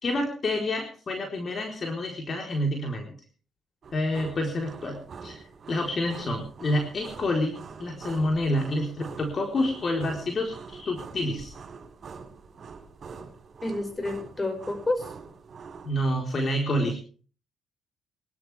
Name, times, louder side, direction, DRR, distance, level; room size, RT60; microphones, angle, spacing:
voice 1, 0.0-3.2 3.9-5.4 5.7-11.6 15.8-17.0, left 1 dB, 45° left, 2 dB, 4.2 m, -28 dB
sound 1, 3.8-15.9, right 5 dB, 50° right, 7.7 m, -44 dB
voice 2, 13.6-15.1, left 2 dB, 20° left, 7 dB, 5.7 m, -29 dB
24.5 x 13.0 x 3.5 m, 0.40 s
cardioid pair, 90°, 0 cm